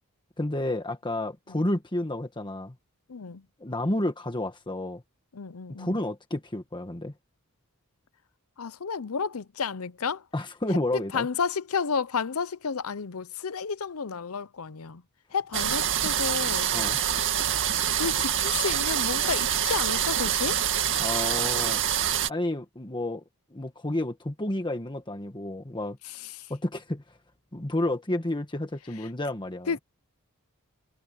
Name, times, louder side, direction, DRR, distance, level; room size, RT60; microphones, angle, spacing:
voice 1, 0.4-2.7 3.6-5.0 5.8-7.1 10.3-11.3 16.7-17.0 21.0-21.8 22.3-23.2 23.5-26.0 26.5-27.0 27.5-29.7, left 1 dB, 20° left, 1.5 m, -30 dB
voice 2, 3.1-3.4 5.3-6.0 8.6-10.2 10.9-15.0 15.3-16.7 18.0-20.7 26.0-26.5 29.7-29.8, left 5 dB, 70° left, 0.7 m, -31 dB
sound 1, 15.5-22.3, right 9 dB, 60° right, 2.2 m, -26 dB
head